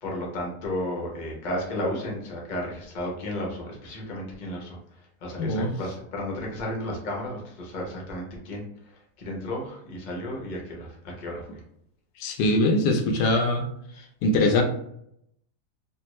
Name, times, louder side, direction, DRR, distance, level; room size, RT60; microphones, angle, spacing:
voice 1, 0.0-4.8 5.2-8.6 9.2-11.6, left 1 dB, 40° left, -1 dB, 0.7 m, -33 dB
voice 2, 5.4-5.7 12.2-13.6 14.2-14.6, left 2 dB, 80° left, 4 dB, 1.2 m, -22 dB
3.4 x 2.3 x 3.0 m, 0.72 s
omnidirectional pair, 1.7 m